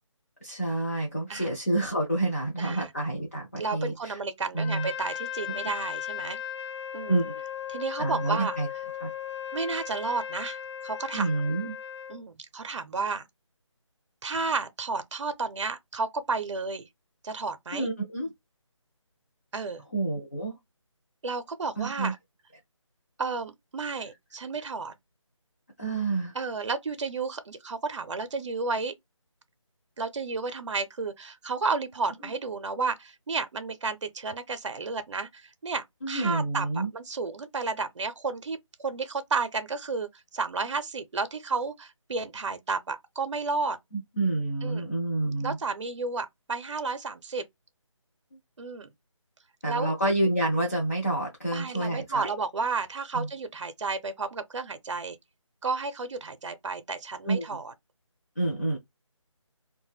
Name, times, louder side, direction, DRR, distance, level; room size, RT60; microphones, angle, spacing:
voice 1, 0.4-4.2 4.5-4.9 5.5-5.6 7.1-7.3 8.0-8.7 9.0-9.1 11.1-11.8 17.7-18.3 19.9-20.6 21.8-22.1 25.8-26.3 36.0-36.9 43.9-45.6 49.6-52.3 53.1-53.3 57.3-57.5 58.4-58.8, right 2 dB, 30° left, 0.5 m, -28 dB
voice 2, 2.6-2.9 3.6-6.4 6.9-7.2 7.7-8.6 9.5-11.3 12.1-13.2 14.2-16.8 17.2-17.9 19.5-19.8 21.2-22.2 23.2-24.9 26.3-28.9 30.0-40.1 40.3-43.8 44.6-44.9 45.4-47.4 48.6-48.9 49.7-49.9 51.5-55.2 55.6-57.7, right 4 dB, 65° right, 0.5 m, -32 dB
Trumpet, 4.5-12.2, left 10 dB, 60° left, 0.8 m, -37 dB
2.4 x 2.1 x 3.2 m
figure-of-eight pair, 175°, 16 cm